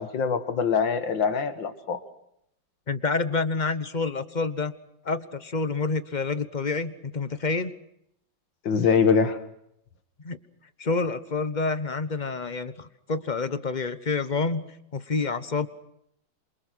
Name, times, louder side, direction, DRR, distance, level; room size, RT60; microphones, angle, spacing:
voice 1, 0.0-2.0 8.6-9.4, left 6 dB, 65° left, 10 dB, 2.3 m, -23 dB
voice 2, 2.9-4.7 5.0-7.7 10.2-10.4 10.8-15.7, left 4 dB, 30° left, 13 dB, 0.9 m, -28 dB
27.5 x 24.0 x 6.3 m, 0.75 s
omnidirectional pair, 2.2 m